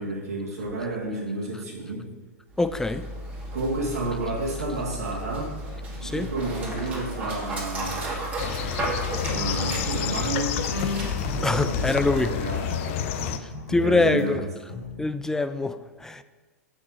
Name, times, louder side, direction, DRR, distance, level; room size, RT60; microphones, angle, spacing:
voice 1, 0.0-2.1 3.5-5.6 6.0-8.2 9.2-10.6 11.3-13.1 13.7-14.5, right 2 dB, 70° right, 2.2 m, -31 dB
Dog, 2.5-12.4, right 1 dB, 20° right, 2.6 m, -34 dB
voice 2, 2.6-3.1 6.0-6.3 11.4-12.3 13.7-14.4 15.0-16.2, left 2 dB, 5° left, 0.3 m, -24 dB
sound 1, 8.4-13.4, left 10 dB, 50° left, 0.6 m, -30 dB
sound 2, 9.1-14.2 14.7-15.1, left 4 dB, 85° left, 1.8 m, -35 dB
7.8 x 5.9 x 5.6 m
figure-of-eight pair, 105°, 9 cm